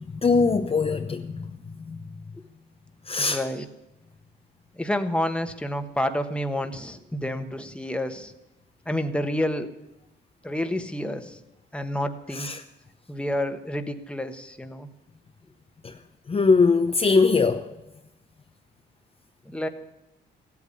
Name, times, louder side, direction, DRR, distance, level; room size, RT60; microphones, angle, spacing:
voice 1, 0.0-1.6 1.9-2.0 3.1-3.4 12.3-12.6 15.8-16.0 16.3-17.7, left 4 dB, 30° left, 0.8 m, -22 dB
voice 2, 3.2-3.7 4.7-8.3 8.8-9.7 10.4-11.4 11.7-12.5 13.1-14.9 19.4-19.7, left 1 dB, 5° left, 1.3 m, -29 dB
15.5 x 8.4 x 9.9 m
cardioid pair, 90°, 20 cm